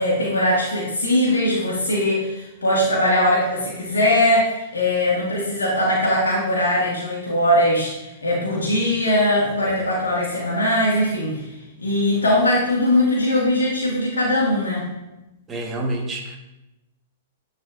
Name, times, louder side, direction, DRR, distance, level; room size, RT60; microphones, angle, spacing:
voice 1, 0.0-14.9, left 1 dB, 80° left, -4 dB, 1.5 m, -20 dB
voice 2, 15.5-16.4, right 1 dB, 20° right, 1 dB, 1.2 m, -27 dB
10.5 x 4.1 x 2.5 m, 0.96 s
figure-of-eight pair, 110°, 0 cm